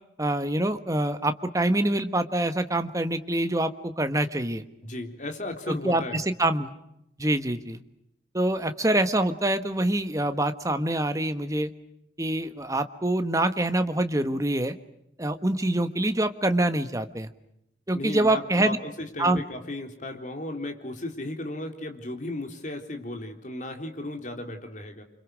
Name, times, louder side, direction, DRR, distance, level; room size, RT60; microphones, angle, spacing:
voice 1, 0.2-4.6 5.7-6.7 7.2-7.8 8.3-11.7 12.2-14.7 15.2-17.3 17.9-18.8 19.2-19.4, right 1 dB, 20° right, 9 dB, 1.4 m, -25 dB
voice 2, 4.8-6.2 17.9-25.0, left 2 dB, 45° left, 4 dB, 3.7 m, -35 dB
29.5 x 26.5 x 6.4 m, 0.79 s
head